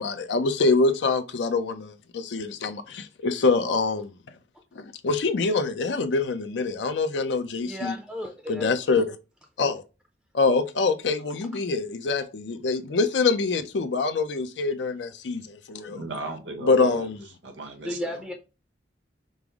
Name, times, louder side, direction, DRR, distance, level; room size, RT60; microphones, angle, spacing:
voice 1, 0.0-4.1 4.8-7.9 8.5-9.1 9.6-9.8 10.3-16.0 16.6-17.2, left 3 dB, 75° left, 0.5 m, -25 dB
voice 2, 7.6-8.7 17.8-18.3, left 1 dB, 5° right, 0.5 m, -33 dB
voice 3, 15.9-17.1 17.4-18.2, right 2 dB, 90° right, 1.1 m, -36 dB
5.3 x 2.0 x 4.6 m
head